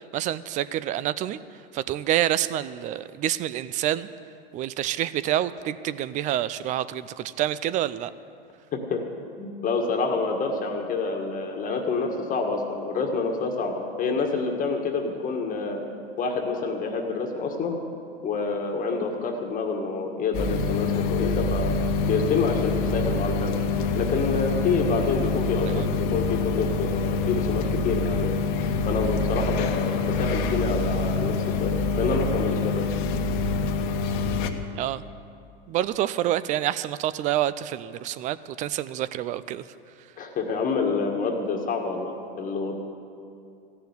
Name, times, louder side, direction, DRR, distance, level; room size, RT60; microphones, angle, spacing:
voice 1, 0.1-1.4 1.7-4.1 4.5-8.1 25.7-25.9 34.7-35.0 35.7-39.6, right 12 dB, 25° right, 16 dB, 0.4 m, -27 dB
voice 2, 8.7-9.0 9.4-15.8 16.2-17.8 18.2-21.7 22.0-23.5 24.0-28.4 28.9-32.8 40.2-42.8, left 4 dB, 30° left, 3 dB, 1.6 m, -27 dB
sound 1, 20.3-34.5, left 4 dB, 55° left, 1.2 m, -26 dB
15.0 x 7.0 x 9.5 m, 2.5 s
supercardioid pair, 125°, 29 cm